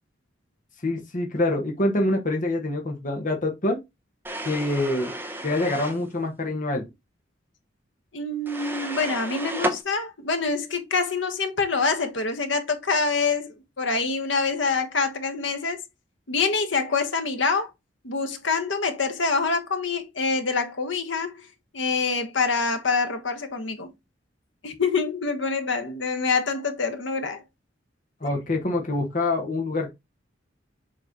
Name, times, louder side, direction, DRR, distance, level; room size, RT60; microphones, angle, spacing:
voice 1, 0.8-3.8 4.4-5.1 5.4-6.8 28.2-29.9, left 2 dB, 45° left, 1.3 m, -25 dB
sound 1, 4.2-6.0 8.5-9.8, right 1 dB, 10° right, 0.9 m, -32 dB
voice 2, 8.1-15.8 16.3-17.7 18.0-21.5 21.7-23.9 24.6-27.4 28.2-28.3, left 4 dB, 70° left, 1.3 m, -26 dB
7.7 x 3.2 x 3.9 m
head